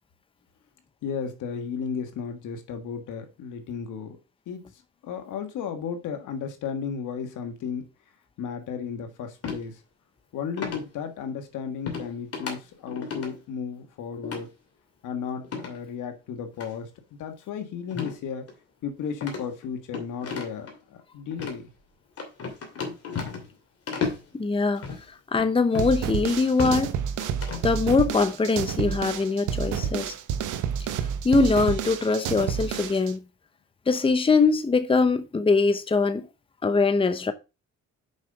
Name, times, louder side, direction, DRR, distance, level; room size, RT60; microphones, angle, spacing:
voice 1, 1.0-4.2 4.5-7.9 8.4-9.8 10.3-14.5 15.0-16.9 17.2-18.5 18.8-21.7, left 6 dB, 80° left, 1.6 m, -34 dB
sound 1, 9.4-9.6 10.6-10.9 11.9-12.1 12.3-12.5 12.9-13.3 14.2-14.4 15.4-15.8 16.5-16.7 17.9-18.2 18.5-18.6 19.2-20.7 21.3-21.6 22.2-23.6 23.9-24.2 24.8-25.0 25.7-25.9 26.4-26.8 27.2-27.7, left 5 dB, 50° left, 2.6 m, -33 dB
voice 2, 24.3-27.0 27.6-30.1 31.2-33.2 33.9-36.3 36.6-37.3, left 4 dB, 20° left, 0.8 m, -22 dB
sound 2, 25.8-33.1, right 8 dB, 80° right, 0.9 m, -30 dB
6.2 x 5.5 x 4.9 m
cardioid pair, 90°, 30 cm